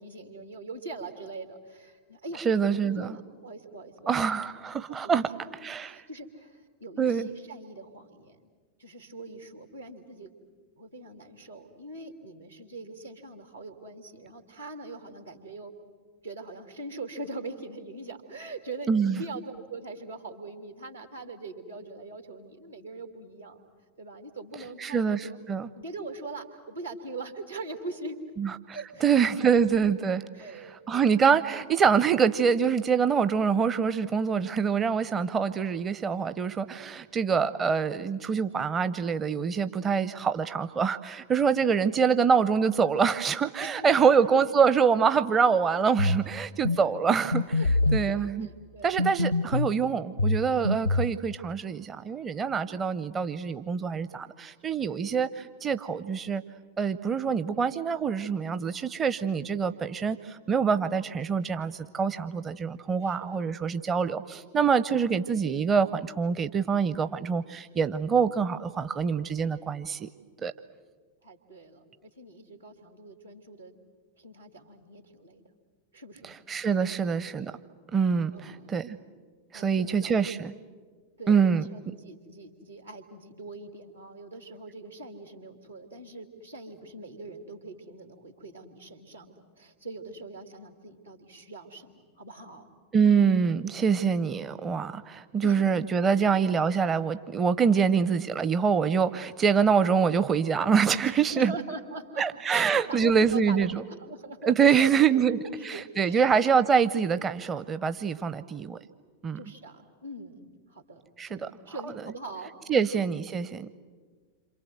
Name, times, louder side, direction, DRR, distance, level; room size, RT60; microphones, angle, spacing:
voice 1, 0.0-2.4 2.7-4.5 4.9-5.4 5.8-8.5 8.8-10.3 10.8-15.7 16.2-23.6 24.0-25.4 25.7-28.2 28.7-29.5 30.3-31.1 43.6-44.0 46.6-46.8 47.6-49.3 63.0-63.5 65.0-65.2 71.2-73.7 74.2-75.4 75.9-76.4 76.8-76.9 78.3-78.9 79.5-80.2 81.2-92.7 93.0-93.1 95.4-95.6 96.1-96.3 101.0-106.6 109.3-110.4 110.7-111.0 111.3-112.9, right 2 dB, 80° right, 5 dB, 3.0 m, -42 dB
voice 2, 2.4-3.1 4.1-5.3 5.6-6.0 7.0-7.3 18.9-19.2 24.8-25.7 28.4-30.2 30.9-47.6 47.9-48.5 48.8-56.4 56.8-70.1 70.4-70.5 76.2-77.5 77.9-79.0 79.5-80.5 81.3-81.9 92.9-101.5 102.2-103.8 104.4-105.4 105.6-108.8 109.2-109.4 111.2-111.5 112.7-113.7, right 6 dB, 20° right, 12 dB, 0.7 m, -25 dB
sound 1, 46.0-46.2 46.6-46.8 47.3-48.1 49.0-49.7 50.2-51.1, left 2 dB, 85° left, 0.8 m, -25 dB
28.0 x 26.5 x 8.0 m, 1.5 s
figure-of-eight pair, 90°, 0 cm